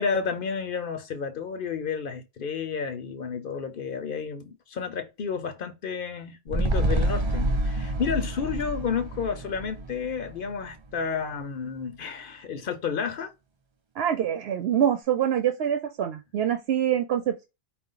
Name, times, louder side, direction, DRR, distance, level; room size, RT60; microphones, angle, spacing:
voice 1, 0.0-13.3, left 6 dB, 60° left, 0.8 m, -31 dB
sound 1, 6.5-11.0 11.3-11.4, right 1 dB, 40° right, 0.4 m, -28 dB
voice 2, 14.0-17.5, right 9 dB, 80° right, 0.9 m, -25 dB
4.6 x 2.5 x 3.8 m
omnidirectional pair, 1.0 m